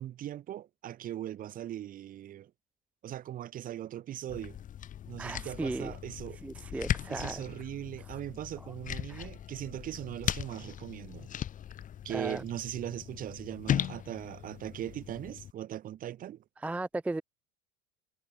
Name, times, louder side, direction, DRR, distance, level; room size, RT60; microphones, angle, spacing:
voice 1, 0.0-2.5 3.0-4.6 5.1-6.4 7.1-11.3 12.0-16.4, right 12 dB, 40° right, 1.4 m, -39 dB
sound 1, 4.3-15.5, left 10 dB, 40° left, 3.9 m, -38 dB
voice 2, 5.2-5.9 6.4-7.4 8.1-8.2 8.6-8.7 9.1-9.3 12.1-12.4 16.6-17.2, right 2 dB, 5° right, 0.4 m, -36 dB
supercardioid pair, 105°, 21 cm